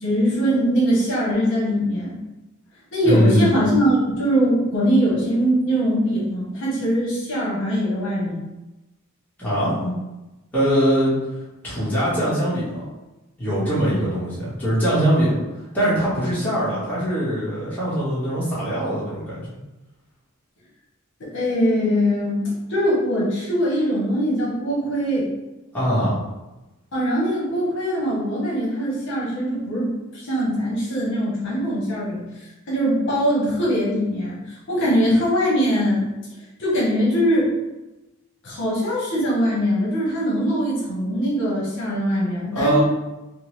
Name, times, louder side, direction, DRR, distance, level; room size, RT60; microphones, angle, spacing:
voice 1, 0.0-2.2 2.9-8.4 21.3-22.4 22.7-25.3 26.9-32.2 32.7-36.1 36.6-37.5 38.4-42.8, equal, 60° left, -6 dB, 0.9 m, -22 dB
voice 2, 3.0-3.5 9.4-9.9 10.5-12.9 13.4-15.4 15.7-19.5 25.7-26.2 42.5-42.8, equal, 10° left, -10 dB, 1.3 m, -22 dB
3.6 x 2.2 x 3.1 m, 1.0 s
head